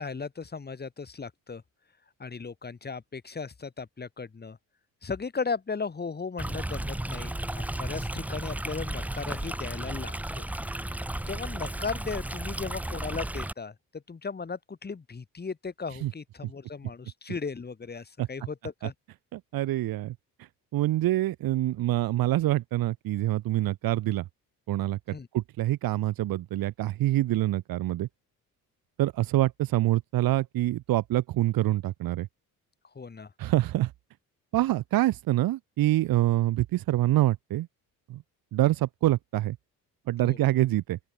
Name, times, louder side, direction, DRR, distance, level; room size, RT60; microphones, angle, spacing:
voice 1, 0.0-1.6 2.2-4.6 5.0-10.5 11.3-18.9 25.1-25.3 33.0-33.3 40.2-40.4, left 5 dB, 25° left, 5.2 m, -36 dB
Stream, 6.4-13.5, right 1 dB, 5° right, 0.8 m, -34 dB
voice 2, 19.3-20.1 20.7-24.2 24.7-25.0 25.3-28.1 29.0-32.3 33.4-33.9 34.5-37.7 38.1-38.2 38.5-39.6 40.1-41.0, right 15 dB, 75° right, 1.6 m, -26 dB
open air
cardioid pair, 115°, 35 cm